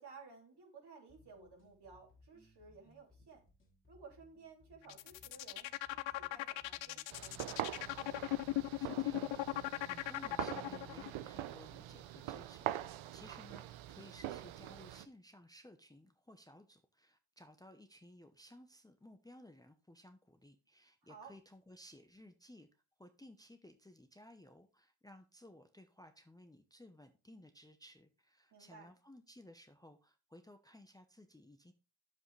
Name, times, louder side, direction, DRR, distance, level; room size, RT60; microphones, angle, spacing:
voice 1, 0.0-3.4 3.9-7.7 21.0-21.3 28.5-28.9, right 5 dB, 60° right, 3.3 m, -56 dB
sound 1, 1.1-9.1, left 3 dB, 25° left, 2.4 m, -66 dB
sound 2, 4.8-11.1, left 16 dB, 75° left, 0.6 m, -38 dB
sound 3, 7.1-15.1, right 13 dB, 85° right, 0.7 m, -44 dB
voice 2, 8.7-22.7 23.0-31.7, left 1 dB, 10° left, 0.8 m, -58 dB
8.8 x 7.5 x 3.3 m
cardioid pair, 95°, 46 cm